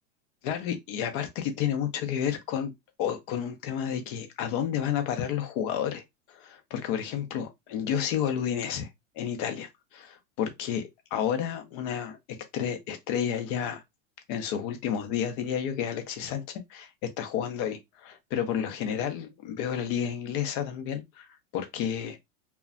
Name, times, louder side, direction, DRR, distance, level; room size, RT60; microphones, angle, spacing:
voice 1, 0.4-2.7 3.0-6.0 6.3-8.9 9.2-12.2 12.5-13.8 14.3-22.2, left 9 dB, 40° left, 0.6 m, -31 dB
2.4 x 2.1 x 2.4 m
supercardioid pair, 140°, 40 cm